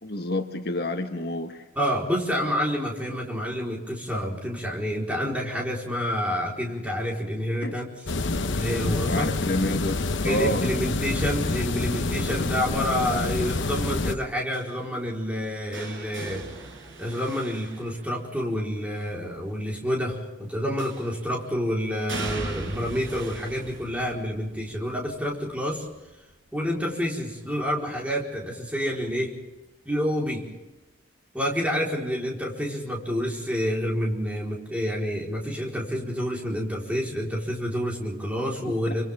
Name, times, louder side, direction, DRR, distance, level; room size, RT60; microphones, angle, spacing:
voice 1, 0.0-1.6 7.6-7.7 9.1-10.7 38.9-39.0, left 1 dB, 50° left, 5 dB, 1.5 m, -28 dB
voice 2, 1.8-7.9 8.5-9.3 10.2-16.4 17.0-25.8 26.5-29.3 29.8-30.5 31.3-39.0, equal, 5° right, -2 dB, 4.4 m, -28 dB
sound 1, 8.1-14.1, left 3 dB, 70° left, 1.0 m, -27 dB
sound 2, 14.5-18.6 20.8-21.4 22.1-27.9 28.2-28.7 29.9-30.0, right 3 dB, 90° right, 5.3 m, -40 dB
28.5 x 25.5 x 3.7 m, 1.0 s
head